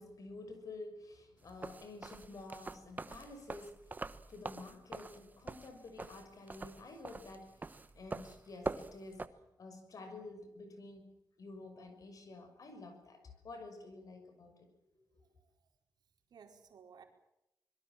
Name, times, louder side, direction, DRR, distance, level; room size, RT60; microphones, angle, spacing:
voice 1, 0.0-11.1 11.4-14.7 14.9-15.2, left 2 dB, 55° left, 7 dB, 6.5 m, -50 dB
sound 1, 1.5-9.3, right 3 dB, 25° right, 1.2 m, -44 dB
voice 2, 15.2-15.7 16.3-17.0, right 6 dB, 70° right, 4 dB, 4.7 m, -59 dB
26.0 x 22.5 x 7.6 m, 0.86 s
wide cardioid pair, 120°, 7 cm